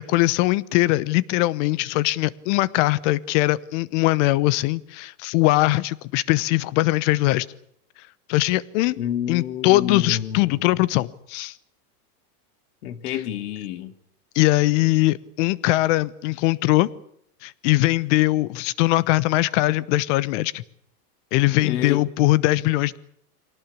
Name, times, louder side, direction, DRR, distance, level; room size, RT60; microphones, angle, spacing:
voice 1, 0.0-7.5 8.3-9.0 9.3-11.5 14.3-16.9 17.4-20.6 21.3-23.0, left 18 dB, 50° left, 1.1 m, -21 dB
voice 2, 9.0-10.6 12.8-13.9 21.6-22.0, left 10 dB, 75° left, 2.5 m, -29 dB
24.0 x 18.0 x 8.6 m
supercardioid pair, 135°, 46 cm